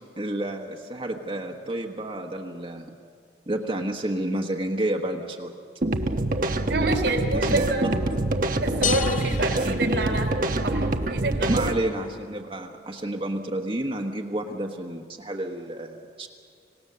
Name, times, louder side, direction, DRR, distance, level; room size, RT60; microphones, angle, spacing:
voice 1, 0.2-2.9 3.5-5.5 7.3-7.7 9.6-9.8 11.5-16.3, right 1 dB, 30° right, 1 dB, 1.2 m, -30 dB
sound 1, 5.8-11.8, right 2 dB, 50° right, 1.0 m, -25 dB
voice 2, 6.7-7.9 8.6-11.8, right 2 dB, 80° right, 4 dB, 3.5 m, -28 dB
sound 2, 8.8-10.7, left 8 dB, 45° left, 0.6 m, -32 dB
27.0 x 18.0 x 6.8 m, 2.2 s
head